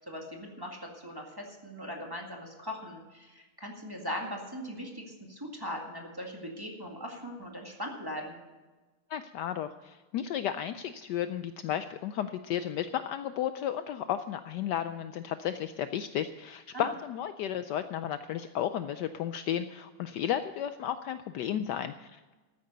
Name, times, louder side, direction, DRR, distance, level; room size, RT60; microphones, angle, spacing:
voice 1, 0.0-8.3 16.7-16.9, equal, 10° right, 0 dB, 1.8 m, -40 dB
voice 2, 9.1-22.3, left 10 dB, 85° left, 10 dB, 0.9 m, -33 dB
13.5 x 9.7 x 6.6 m, 1.2 s
omnidirectional pair, 2.4 m